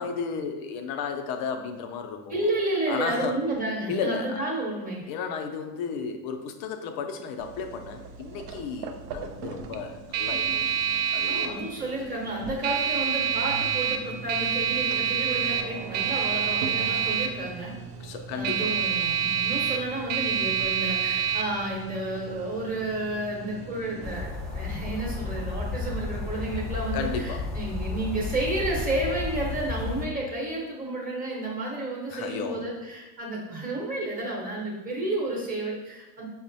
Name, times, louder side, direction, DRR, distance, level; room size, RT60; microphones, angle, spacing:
voice 1, 0.0-2.5 2.9-3.4 3.9-4.4 5.1-10.5 11.1-11.7 18.0-18.9 26.9-27.5 32.1-32.7, left 5 dB, 55° left, 5 dB, 0.5 m, -33 dB
voice 2, 2.3-5.0 11.2-17.7 18.3-36.3, right 2 dB, 20° right, -3 dB, 1.0 m, -31 dB
sound 1, 7.4-24.2, right 8 dB, 85° right, 0.5 m, -29 dB
sound 2, 24.0-30.1, left 4 dB, ahead, 0.5 m, -32 dB
5.3 x 2.1 x 2.6 m, 1.1 s
supercardioid pair, 120°, 44 cm